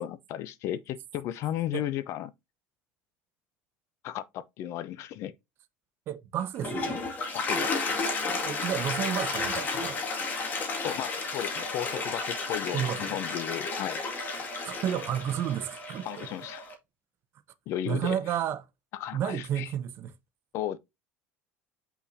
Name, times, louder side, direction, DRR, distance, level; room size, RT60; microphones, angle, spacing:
voice 1, 0.0-2.3 4.0-5.3 7.3-7.8 10.8-14.0 16.0-16.6 17.7-18.2 19.0-19.7 20.5-20.8, left 12 dB, 55° left, 0.7 m, -34 dB
voice 2, 6.1-7.0 8.2-10.0 12.7-13.2 14.5-16.3 17.9-18.6 19.1-20.1, right 10 dB, 50° right, 0.8 m, -32 dB
Toilet flush, 6.4-16.7, left 3 dB, 35° left, 2.1 m, -32 dB
6.3 x 5.8 x 2.7 m
supercardioid pair, 125°, 5 cm